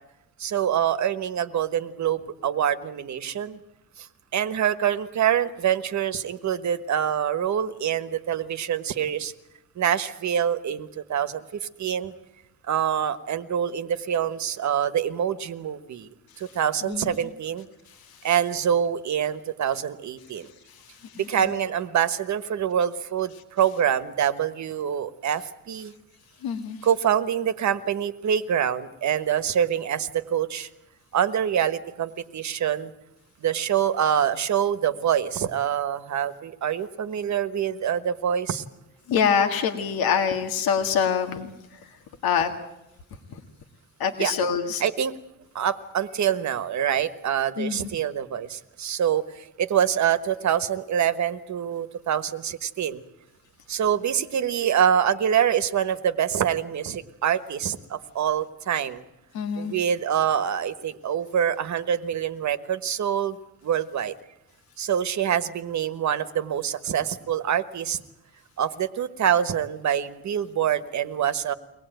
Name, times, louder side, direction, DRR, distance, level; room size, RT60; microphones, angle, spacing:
voice 1, 0.4-3.6 4.0-4.1 4.3-9.3 9.8-11.4 11.8-12.1 12.7-16.1 16.4-17.7 18.2-20.5 21.2-25.9 26.8-30.7 31.1-32.9 33.4-38.6 44.2-44.3 44.8-45.1 45.5-53.0 53.7-59.0 59.5-63.4 63.6-64.1 64.8-68.0 68.6-71.5, right 9 dB, 50° right, 12 dB, 1.3 m, -25 dB
voice 2, 26.4-26.8 39.1-41.5 42.2-42.5 44.0-44.8 47.6-47.9 59.3-59.7, left 7 dB, 85° left, 5 dB, 2.1 m, -25 dB
23.5 x 18.5 x 9.1 m, 0.89 s
cardioid pair, 150°, 35 cm